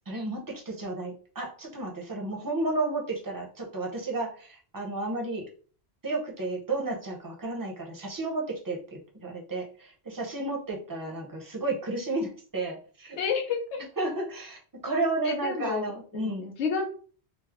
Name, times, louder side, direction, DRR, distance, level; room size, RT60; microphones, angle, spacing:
voice 1, 0.1-5.5 6.0-13.2 14.0-16.5, right 2 dB, 25° right, 0 dB, 0.6 m, -32 dB
voice 2, 13.2-13.8 15.2-16.9, left 6 dB, 85° left, 3 dB, 0.9 m, -30 dB
3.1 x 2.0 x 3.5 m, 0.42 s
omnidirectional pair, 1.1 m